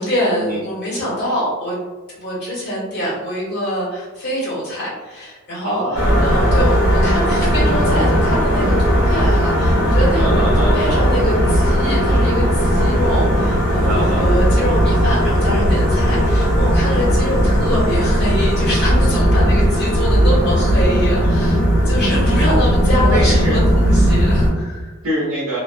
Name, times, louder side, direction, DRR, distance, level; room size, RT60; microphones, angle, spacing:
voice 1, 0.0-1.8 2.2-5.8 6.2-10.3 10.7-24.9, equal, 50° left, -8 dB, 1.2 m, -24 dB
voice 2, 5.6-6.6 10.1-10.8 13.8-14.3 20.9-21.3 23.0-23.6 25.0-25.6, right 1 dB, 65° right, -6 dB, 0.6 m, -24 dB
sound 1, 5.9-24.5, equal, 80° left, 1.1 m, -16 dB
sound 2, 7.3-16.2, right 1 dB, 15° right, 0.3 m, -29 dB
sound 3, 12.5-18.8, equal, 35° right, 1.1 m, -35 dB
2.4 x 2.2 x 2.5 m, 1.2 s
head